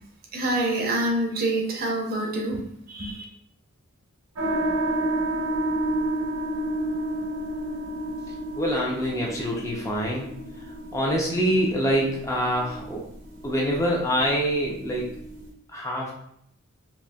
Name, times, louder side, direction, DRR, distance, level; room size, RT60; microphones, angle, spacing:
voice 1, 0.3-2.6 2.9-3.2, right 1 dB, 40° right, 0 dB, 0.6 m, -26 dB
sound 1, 4.4-15.5, right 1 dB, 75° right, 0.7 m, -31 dB
voice 2, 8.6-10.7 10.9-13.0 13.4-15.1 15.7-16.1, equal, 15° left, -2 dB, 0.5 m, -25 dB
4.2 x 2.7 x 2.2 m, 0.72 s
head